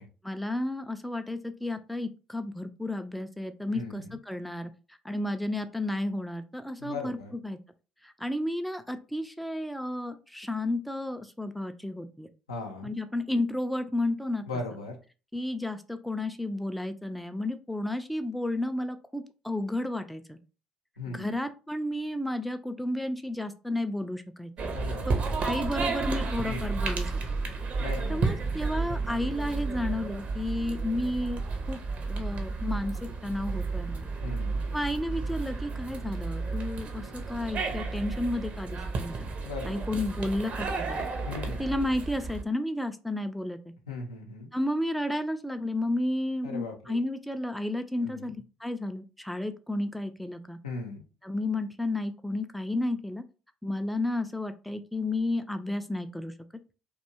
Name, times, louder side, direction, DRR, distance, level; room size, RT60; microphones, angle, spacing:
voice 1, 0.2-4.7 5.0-7.2 7.4-7.6 8.0-12.3 12.8-14.4 15.3-20.4 21.1-24.5 25.1-25.2 25.4-27.1 28.1-31.4 31.7-34.1 34.7-39.3 39.7-41.1 41.6-43.6 44.5-50.6 51.2-53.2 53.6-56.3, left 1 dB, ahead, 8 dB, 0.3 m, -32 dB
voice 2, 3.7-4.2 6.8-7.3 12.5-12.9 14.5-15.0 21.0-21.3 24.7-25.2 26.4-26.9 27.8-28.3 34.2-34.6 39.4-39.9 41.2-41.7 43.9-44.5 46.4-47.0 48.0-48.3 50.6-51.0, left 3 dB, 85° left, 2 dB, 0.5 m, -38 dB
sound 1, 24.6-42.4, right 4 dB, 45° right, 0.6 m, -32 dB
2.6 x 2.2 x 2.6 m, 0.33 s
figure-of-eight pair, 50°, 3 cm